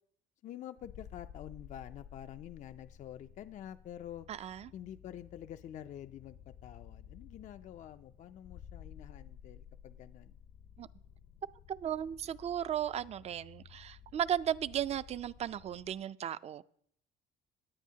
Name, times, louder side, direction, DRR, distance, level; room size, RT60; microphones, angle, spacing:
voice 1, 0.4-4.3 4.7-10.4, left 11 dB, 45° left, 0.4 m, -48 dB
sound 1, 0.8-16.0, left 9 dB, 90° left, 1.2 m, -54 dB
voice 2, 4.3-4.7 10.8-10.9 11.7-16.6, right 10 dB, 40° right, 0.4 m, -35 dB
17.5 x 9.7 x 2.8 m
cardioid pair, 110°, 17 cm